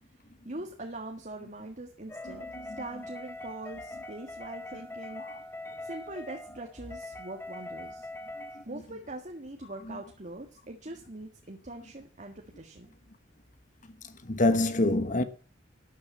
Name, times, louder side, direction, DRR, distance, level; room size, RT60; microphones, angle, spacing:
voice 1, 0.4-5.2 5.8-8.1 8.6-12.9, right 2 dB, 40° right, 1.7 m, -42 dB
sound 1, 2.1-8.7, left 1 dB, 10° left, 1.0 m, -42 dB
voice 2, 2.2-2.8 5.2-5.4 5.7-5.8 8.4-8.8 9.8-10.0 13.8-15.2, left 2 dB, 40° left, 1.2 m, -29 dB
12.5 x 10.5 x 7.4 m
head